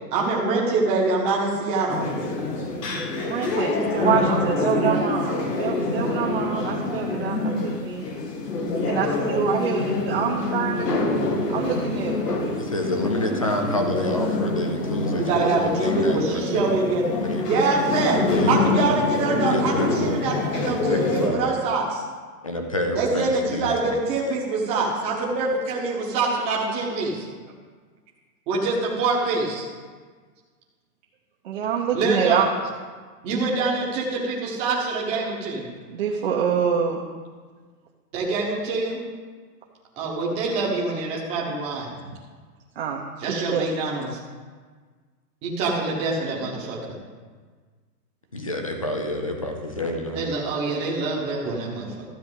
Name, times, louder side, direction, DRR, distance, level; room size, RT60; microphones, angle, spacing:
voice 1, 0.1-2.0 3.7-5.6 15.2-17.0 17.4-18.2 18.5-22.0 22.9-27.2 28.5-29.7 31.9-32.4 33.2-35.7 38.1-39.0 40.0-41.9 43.2-44.1 45.4-47.0 50.1-52.0, right 3 dB, 10° right, -4 dB, 1.0 m, -25 dB
sound 1, 1.9-21.3, left 2 dB, 80° left, 2.4 m, -26 dB
voice 2, 3.2-5.3 5.6-8.1 8.9-10.8 11.5-12.5 31.4-32.5 35.9-37.0 42.8-43.7, right 7 dB, 40° right, -1 dB, 0.8 m, -26 dB
voice 3, 12.6-16.6 17.1-17.5 18.1-18.9 19.4-20.2 20.6-21.6 22.4-23.9 48.3-50.3, left 1 dB, 25° left, 3 dB, 0.4 m, -28 dB
12.5 x 4.3 x 8.1 m, 1.5 s
hypercardioid pair, 175°, 48 cm